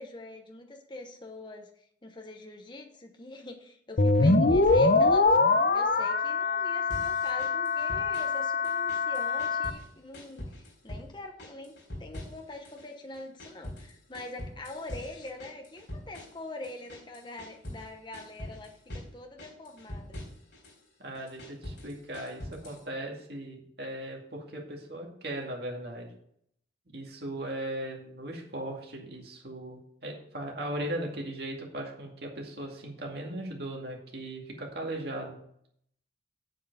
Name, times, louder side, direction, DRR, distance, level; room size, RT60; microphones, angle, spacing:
voice 1, 0.0-5.3 5.7-20.2, left 2 dB, 25° left, 3 dB, 0.9 m, -44 dB
sound 1, 4.0-9.7, left 3 dB, 50° left, 0.7 m, -24 dB
sound 2, 6.9-8.4 8.6-9.9 10.1-11.1 11.4-12.9 13.1-17.9 18.1-19.1 19.4-20.8 21.1-22.8, left 1 dB, 80° left, 4.1 m, -43 dB
voice 2, 21.0-26.1 26.9-35.4, right 1 dB, 55° right, 0 dB, 2.3 m, -38 dB
7.7 x 7.4 x 5.5 m, 0.69 s
head